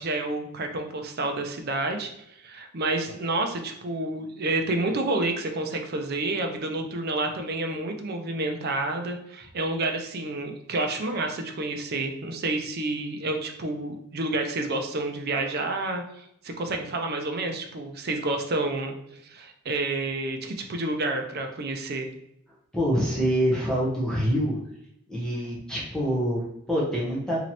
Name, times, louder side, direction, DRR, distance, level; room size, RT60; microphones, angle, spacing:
voice 1, 0.0-2.1 2.4-19.0 19.2-22.1, right 2 dB, 50° right, 5 dB, 0.5 m, -29 dB
voice 2, 22.7-24.6 25.1-27.4, equal, 5° left, -5 dB, 0.8 m, -25 dB
3.1 x 2.9 x 4.1 m, 0.77 s
head